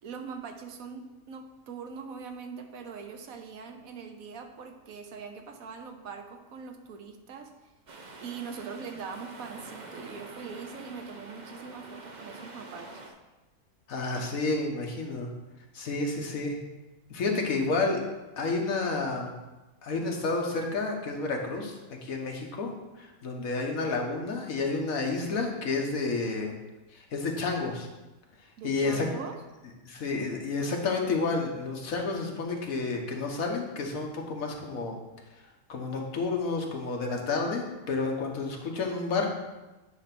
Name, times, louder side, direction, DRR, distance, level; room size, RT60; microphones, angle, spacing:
voice 1, 0.0-7.5 8.2-13.0 28.6-29.3, right 5 dB, 90° right, 5 dB, 1.3 m, -42 dB
sound 1, 7.9-13.1, right 3 dB, 40° right, 0.8 m, -46 dB
voice 2, 13.9-15.3 15.7-16.6 17.1-18.0 18.4-19.3 19.8-22.7 23.0-26.5 26.9-27.9 28.6-29.1 29.8-35.0 35.7-39.3, left 3 dB, 80° left, 1 dB, 1.6 m, -30 dB
9.4 x 3.3 x 5.9 m, 1.1 s
omnidirectional pair, 1.4 m